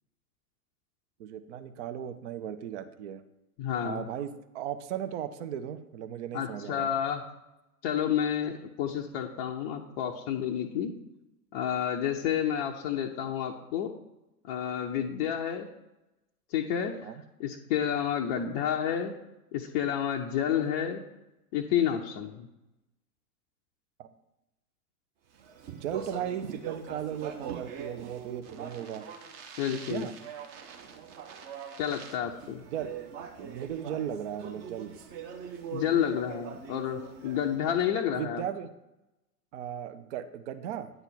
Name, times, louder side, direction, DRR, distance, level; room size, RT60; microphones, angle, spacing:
voice 1, 1.2-3.2 3.8-4.3 4.5-6.9 17.0-17.2 20.5-20.7 24.0-24.1 25.8-29.0 29.7-30.1 32.7-32.9 33.4-34.9 38.2-38.7 39.5-40.9, right 9 dB, 50° right, 10 dB, 0.7 m, -36 dB
voice 2, 3.6-4.1 6.3-7.2 7.8-10.9 11.5-13.9 14.4-15.7 16.5-17.1 17.4-19.1 19.5-21.0 21.5-22.5 29.6-30.1 31.8-32.6 35.7-38.4, left 9 dB, 25° left, 0 dB, 0.5 m, -30 dB
Speech, 25.4-37.7, right 7 dB, 35° right, 1.0 m, -42 dB
9.3 x 4.0 x 5.5 m, 0.93 s
figure-of-eight pair, 95°, 46 cm